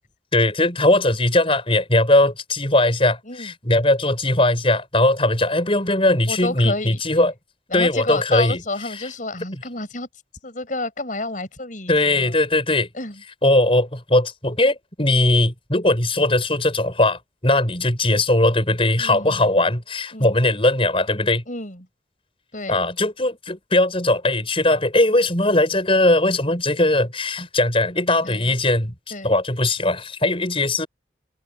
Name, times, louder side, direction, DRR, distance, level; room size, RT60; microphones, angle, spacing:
voice 1, 0.3-7.3 7.7-8.6 11.9-12.9 13.4-21.4 22.7-28.9 29.2-30.9, left 2 dB, 30° left, 6.6 m, -19 dB
voice 2, 6.3-7.0 7.7-10.1 10.4-12.4 12.9-13.2 19.0-19.5 20.1-20.3 21.5-21.9 22.5-22.8 28.2-28.5 29.1-29.3, left 2 dB, 45° left, 6.4 m, -30 dB
open air
head